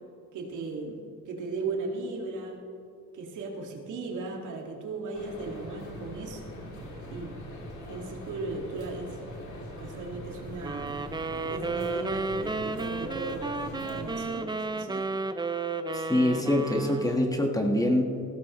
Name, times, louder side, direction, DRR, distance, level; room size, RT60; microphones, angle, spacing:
voice 1, 0.3-2.6 3.1-6.6 7.1-7.4 7.9-9.2 9.8-11.0 11.3-15.2, right 3 dB, 80° right, 1 dB, 2.0 m, -37 dB
sound 1, 5.1-14.2, left 1 dB, 75° left, 2.8 m, -42 dB
sound 2, 10.6-17.4, right 3 dB, 15° right, 0.6 m, -33 dB
voice 2, 15.9-18.2, left 1 dB, 10° left, 3 dB, 1.4 m, -25 dB
15.5 x 14.0 x 3.1 m, 2.5 s
cardioid pair, 90°, 30 cm